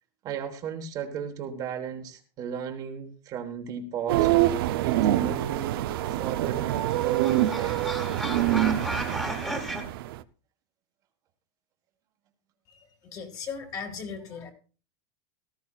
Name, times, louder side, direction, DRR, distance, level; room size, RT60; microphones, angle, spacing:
voice 1, 0.2-4.3 4.8-7.9, right 7 dB, 30° right, 4 dB, 1.4 m, -36 dB
sound 1, 4.1-10.2, right 14 dB, 65° right, 0.7 m, -25 dB
sound 2, 6.3-9.8, equal, 5° left, 1.8 m, -35 dB
voice 2, 13.0-14.5, left 5 dB, 25° left, 4 dB, 2.0 m, -37 dB
18.5 x 14.0 x 2.4 m, 0.36 s
supercardioid pair, 170°, 13 cm